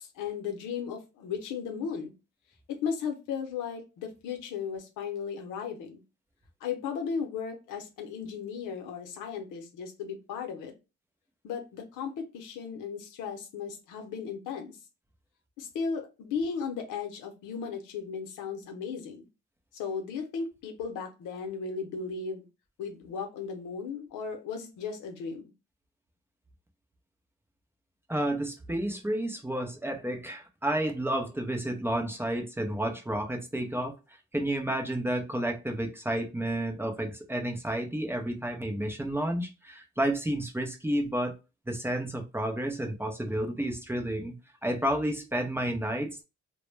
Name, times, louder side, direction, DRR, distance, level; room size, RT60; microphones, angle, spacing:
voice 1, 0.0-2.1 2.7-6.0 6.6-10.7 11.4-14.8 15.6-19.3 19.7-22.4 22.8-25.5, left 6 dB, 90° left, 0.7 m, -36 dB
voice 2, 28.1-33.9 34.3-41.4 41.7-44.3 44.6-46.2, right 1 dB, 10° right, 0.5 m, -31 dB
2.1 x 2.0 x 3.1 m
cardioid pair, 90°, 30 cm